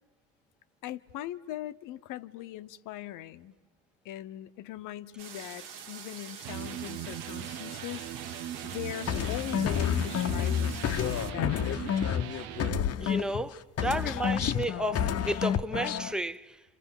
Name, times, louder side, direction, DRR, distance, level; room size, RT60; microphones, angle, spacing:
voice 1, 0.8-3.6 4.0-11.8 14.0-14.6, left 13 dB, 70° left, 1.0 m, -41 dB
sound 1, 5.2-11.3, right 7 dB, 75° right, 1.6 m, -45 dB
Electric guitar, 6.4-12.8, right 11 dB, 90° right, 0.9 m, -39 dB
sound 2, 9.1-13.5 13.8-16.1, left 9 dB, 45° left, 0.9 m, -29 dB
voice 2, 13.0-16.6, right 1 dB, ahead, 0.8 m, -32 dB
29.5 x 27.5 x 7.2 m
supercardioid pair, 80°, 33 cm